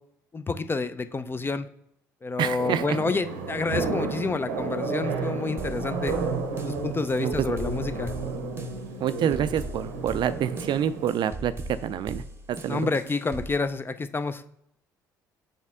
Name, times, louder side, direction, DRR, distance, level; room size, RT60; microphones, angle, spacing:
voice 1, 0.3-1.7 2.2-6.2 6.6-8.1 12.7-14.5, left 4 dB, 25° left, 11 dB, 0.5 m, -29 dB
voice 2, 2.4-3.0 7.2-7.5 9.0-11.5 11.8-12.2 12.5-12.9, right 9 dB, 55° right, 13 dB, 0.4 m, -27 dB
sound 1, 2.6-11.1, right 4 dB, 80° right, 0.7 m, -32 dB
sound 2, 5.6-13.6, right 2 dB, 25° right, 0.8 m, -40 dB
6.2 x 4.2 x 3.6 m, 0.72 s
hypercardioid pair, 60°, 10 cm